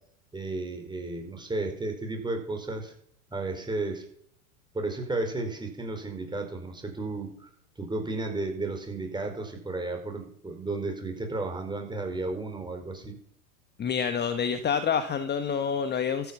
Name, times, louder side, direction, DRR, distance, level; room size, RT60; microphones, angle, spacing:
voice 1, 0.3-2.9 3.3-4.0 4.7-7.5 7.8-13.2, right 2 dB, 10° right, 4 dB, 4.7 m, -33 dB
voice 2, 13.8-16.3, left 7 dB, 25° left, 9 dB, 1.3 m, -27 dB
13.5 x 9.5 x 7.4 m, 0.65 s
hypercardioid pair, 95°, 42 cm